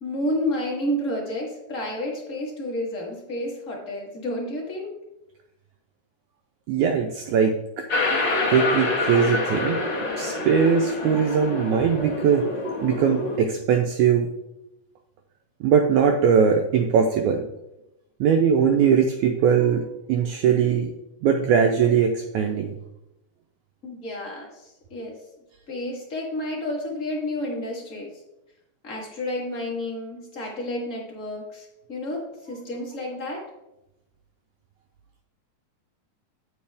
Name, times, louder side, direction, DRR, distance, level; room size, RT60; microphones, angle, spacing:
voice 1, 0.0-4.9 23.8-25.2 25.7-28.1 28.8-33.5, left 1 dB, 30° left, -2 dB, 1.6 m, -30 dB
voice 2, 6.7-7.9 8.5-9.9 10.2-12.5 12.8-14.3 15.6-17.4 18.2-20.9 21.2-22.7, right 7 dB, 90° right, 4 dB, 1.7 m, -21 dB
sound 1, 7.9-13.4, left 2 dB, 50° left, 1.4 m, -26 dB
9.2 x 7.0 x 3.5 m, 0.91 s
omnidirectional pair, 4.1 m